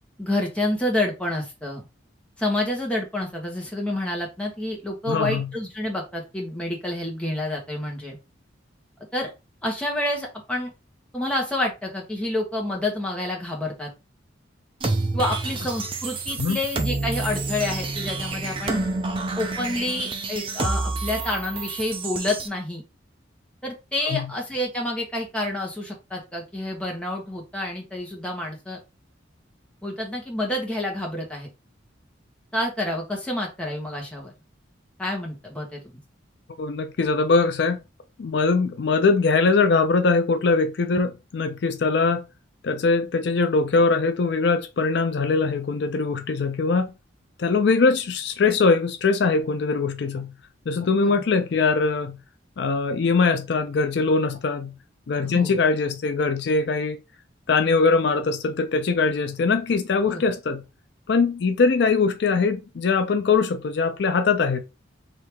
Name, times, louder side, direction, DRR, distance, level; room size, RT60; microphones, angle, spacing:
voice 1, 0.2-1.9 2.4-8.2 9.1-9.3 9.6-10.7 11.1-13.9 15.1-18.8 19.4-22.8 23.6-28.8 29.8-31.5 32.5-34.3 35.0-35.8 51.0-51.2 55.2-55.6 60.1-60.2, left 1 dB, 5° left, 1.1 m, -28 dB
voice 2, 5.1-5.5 16.4-16.6 24.0-24.3 36.6-37.8 38.2-42.2 42.6-46.9 47.4-50.3 50.7-52.2 52.6-54.8 55.1-57.0 57.5-60.6 61.1-64.6, left 4 dB, 60° left, 0.4 m, -22 dB
sound 1, 14.8-22.5, right 3 dB, 25° right, 0.5 m, -28 dB
3.4 x 2.8 x 4.5 m
head